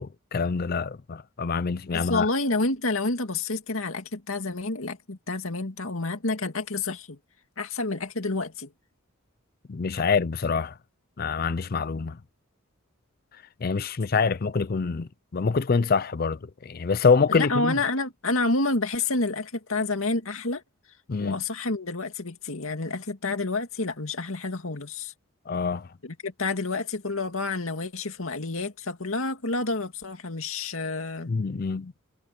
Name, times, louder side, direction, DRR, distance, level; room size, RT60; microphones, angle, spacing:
voice 1, 0.0-2.3 9.7-10.7 11.2-12.2 13.6-17.8 21.1-21.4 25.5-25.9 31.3-31.9, left 5 dB, 45° left, 0.5 m, -25 dB
voice 2, 1.9-7.2 7.6-8.7 17.3-20.6 21.2-25.1 26.0-31.3, left 3 dB, 75° left, 2.2 m, -29 dB
head